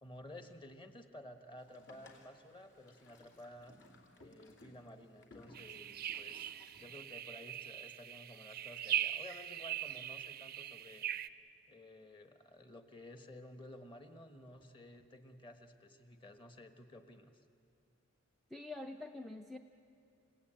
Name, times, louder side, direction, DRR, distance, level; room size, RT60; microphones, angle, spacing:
voice 1, 0.0-3.8 4.2-6.5 6.8-11.1 11.7-17.4, left 1 dB, 25° left, 7 dB, 1.3 m, -54 dB
Boat Water vehicle, 1.6-6.9, left 2 dB, 60° left, 2.8 m, -61 dB
sound 1, 5.5-11.3, right 11 dB, 45° right, 0.5 m, -41 dB
voice 2, 18.5-19.6, left 2 dB, ahead, 1 dB, 0.5 m, -45 dB
29.5 x 17.0 x 8.9 m, 2.5 s
head